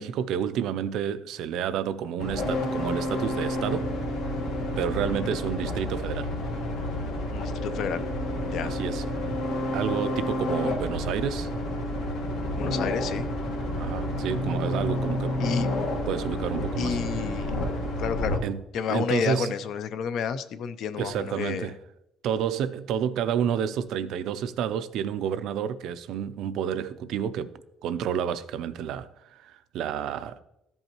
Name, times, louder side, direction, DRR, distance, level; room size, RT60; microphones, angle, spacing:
voice 1, 0.0-3.9 4.8-6.3 8.6-9.1 9.7-11.5 13.8-15.4 16.1-17.0 18.4-18.6 18.9-19.5 21.0-21.8 22.2-27.5 27.8-30.4, right 8 dB, 60° right, 0.4 m, -30 dB
sound 1, 2.2-18.4, left 1 dB, 75° left, 1.5 m, -29 dB
voice 2, 5.0-5.4 7.3-8.0 8.5-8.7 10.7-10.8 12.5-13.3 15.4-15.7 16.8-17.5 18.0-18.4 18.7-21.7, left 7 dB, 55° left, 0.5 m, -30 dB
14.0 x 5.4 x 2.9 m
cardioid pair, 170°, 0 cm